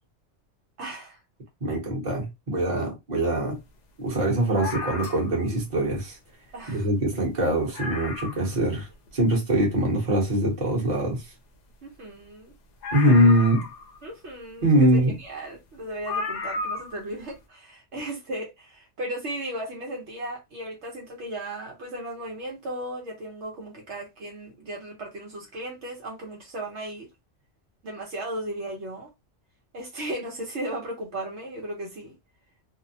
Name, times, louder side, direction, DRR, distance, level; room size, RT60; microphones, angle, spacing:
voice 1, 0.8-1.2 1.7-1.8 6.5-6.9 11.8-12.5 13.0-13.2 14.0-27.1 27.8-29.1 29.7-32.2, right 1 dB, 70° right, 1.0 m, -36 dB
voice 2, 1.6-3.6 4.0-6.2 6.7-11.3 12.9-13.7 14.6-15.1, right 1 dB, 40° right, 1.1 m, -23 dB
sound 1, 4.6-5.5 6.6-6.7 7.0-7.1 7.4-7.5 7.7-8.6 9.1-9.2 12.8-14.1 15.3-15.4 16.1-17.0 17.3-17.4, left 3 dB, 55° left, 0.5 m, -33 dB
2.7 x 2.0 x 2.7 m
omnidirectional pair, 1.2 m